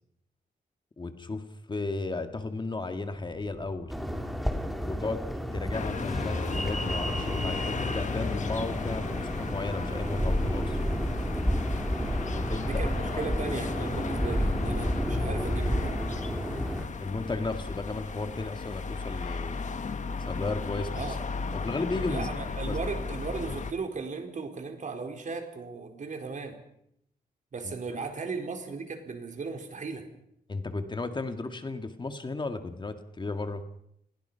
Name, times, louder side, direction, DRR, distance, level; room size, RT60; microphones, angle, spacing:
voice 1, 1.0-3.9 4.8-5.2 5.5-10.8 12.2-12.8 13.1-13.3 17.0-19.6 20.2-21.2 21.5-22.3 22.7-22.8 27.6-28.1 30.5-33.6, left 3 dB, 30° left, 7 dB, 1.9 m, -34 dB
sound 1, 2.9-9.2, right 1 dB, 20° right, 7.5 m, -49 dB
sound 2, 3.9-16.8, equal, ahead, 3.1 m, -31 dB
sound 3, 5.7-23.7, left 5 dB, 50° left, 1.7 m, -35 dB
voice 2, 12.6-15.9 20.9-21.2 22.1-26.6 27.5-30.1, right 4 dB, 50° right, 5 dB, 4.5 m, -36 dB
29.0 x 21.5 x 5.7 m, 0.74 s
wide cardioid pair, 115°, 16 cm